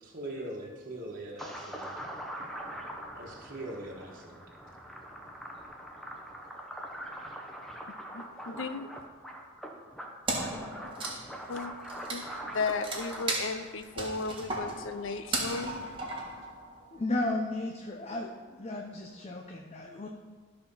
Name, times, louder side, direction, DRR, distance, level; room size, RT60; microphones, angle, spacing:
voice 1, 0.0-1.9 3.1-4.4, right 1 dB, 45° right, -2 dB, 1.4 m, -41 dB
sound 1, 1.4-13.2, equal, ahead, 0.9 m, -43 dB
voice 2, 8.1-8.9 11.5-11.7 12.1-15.9, left 4 dB, 70° left, 10 dB, 0.6 m, -35 dB
Wood, 10.3-17.0, right 2 dB, 25° right, 1.5 m, -36 dB
voice 3, 16.9-20.1, left 2 dB, 30° left, 2 dB, 0.7 m, -34 dB
13.0 x 4.4 x 5.6 m, 1.4 s
head